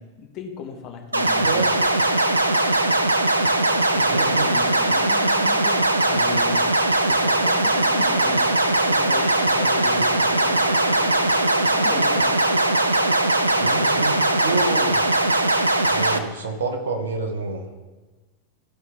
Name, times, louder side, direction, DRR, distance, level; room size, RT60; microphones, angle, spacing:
voice 1, 0.0-1.6 3.7-6.6 7.1-11.2 11.7-12.4, left 6 dB, 40° left, 3 dB, 1.1 m, -37 dB
sound 1, 1.1-16.2, right 2 dB, 85° right, 0.4 m, -20 dB
voice 2, 1.4-1.9 4.0-4.5 13.5-14.1 14.4-15.0 15.9-17.6, right 3 dB, 65° right, 5 dB, 1.1 m, -28 dB
sound 2, 8.2-14.3, left 2 dB, 85° left, 0.4 m, -35 dB
12.5 x 4.6 x 3.5 m, 1.2 s
figure-of-eight pair, 90°, 0 cm